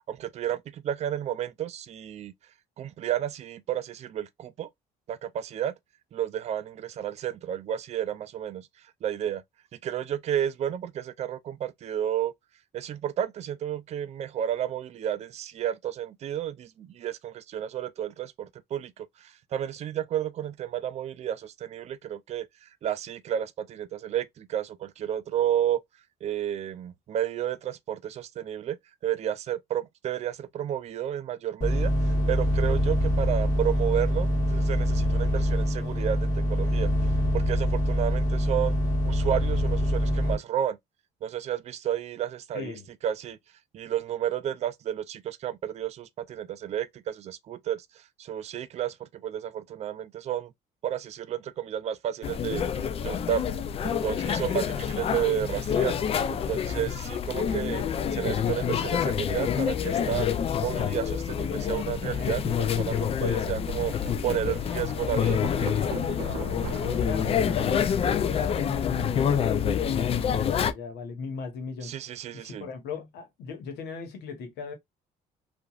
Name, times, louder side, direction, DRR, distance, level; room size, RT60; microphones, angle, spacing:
voice 1, 0.1-2.3 2.8-4.7 5.1-5.7 6.1-8.7 9.0-9.4 9.8-12.3 12.7-25.8 26.2-28.8 29.0-36.9 37.3-38.8 39.0-40.8 41.2-42.7 43.0-43.4 43.7-50.5 50.8-52.6 53.0-53.4 53.8-55.9 56.3-57.8 58.1-60.3 60.6-65.4 71.8-72.7, right 10 dB, 40° right, 0.4 m, -31 dB
sound 1, 31.6-40.4, equal, 20° left, 1.6 m, -25 dB
voice 2, 42.5-42.9 67.0-71.9 72.3-74.7, left 5 dB, 80° left, 1.1 m, -39 dB
sound 2, 52.2-70.7, left 8 dB, 35° left, 0.3 m, -27 dB
Thunder, 63.8-69.6, right 8 dB, 85° right, 0.7 m, -42 dB
2.9 x 2.5 x 2.3 m
cardioid pair, 110°, 17 cm